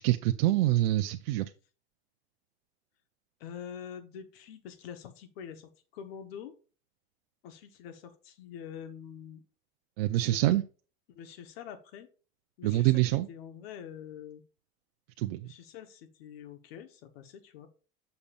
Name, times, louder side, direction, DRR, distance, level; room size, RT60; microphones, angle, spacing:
voice 1, 0.0-1.5 10.0-10.6 12.6-13.3 15.2-15.5, right 16 dB, 85° right, 0.6 m, -26 dB
voice 2, 3.4-6.5 7.4-9.4 10.1-10.4 11.1-12.1 12.6-14.4 15.4-17.7, left 8 dB, 80° left, 1.3 m, -45 dB
6.9 x 6.7 x 2.5 m
supercardioid pair, 145°, 29 cm